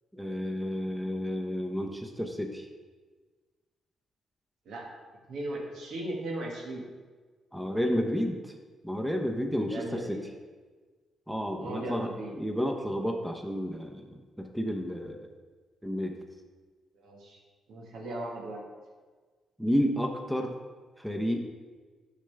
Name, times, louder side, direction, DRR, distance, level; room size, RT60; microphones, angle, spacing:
voice 1, 0.1-2.7 7.5-8.4 8.8-10.2 11.3-14.1 14.4-15.3 15.8-16.2 19.6-20.5 21.0-21.4, equal, 5° right, 3 dB, 0.8 m, -31 dB
voice 2, 5.3-6.8 9.7-10.2 11.6-12.4 17.0-17.4 17.7-18.6, right 1 dB, 80° right, -1 dB, 1.8 m, -37 dB
9.7 x 6.7 x 3.5 m, 1.4 s
cardioid pair, 100°, 0 cm